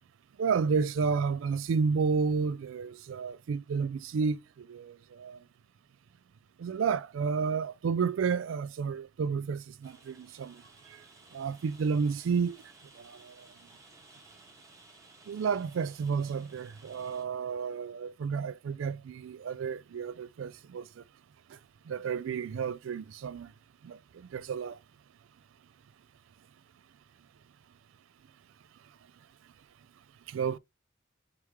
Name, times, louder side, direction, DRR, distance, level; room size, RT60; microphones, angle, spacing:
voice 1, 0.4-5.4 6.6-11.0 11.3-12.6 13.0-13.5 15.3-21.0 21.5-21.6 21.9-23.5 23.8-24.8 30.3-30.6, right 5 dB, 70° right, 0.3 m, -31 dB
Rain, 9.8-17.2, right 2 dB, 15° right, 0.9 m, -57 dB
3.6 x 3.1 x 3.0 m
head